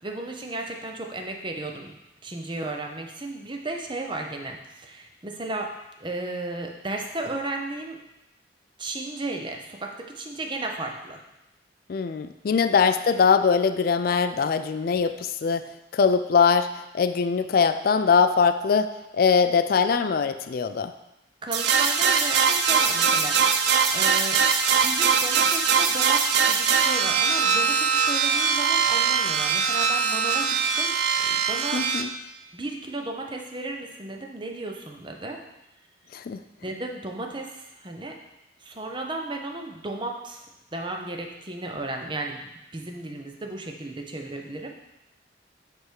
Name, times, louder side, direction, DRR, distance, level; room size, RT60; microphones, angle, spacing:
voice 1, 0.0-1.9 2.2-5.7 6.0-8.0 8.8-11.2 12.5-12.6 21.4-23.5 23.9-24.4 24.8-31.8 32.5-35.4 36.6-38.2 38.6-40.5 40.7-44.7, right 2 dB, 25° right, 2 dB, 0.7 m, -34 dB
voice 2, 11.9-16.7 16.9-20.9 31.7-32.1 36.1-36.4, left 5 dB, 55° left, 10 dB, 0.4 m, -22 dB
sound 1, 21.5-32.0, right 6 dB, 65° right, 0.6 m, -22 dB
9.6 x 3.5 x 4.6 m, 0.92 s
head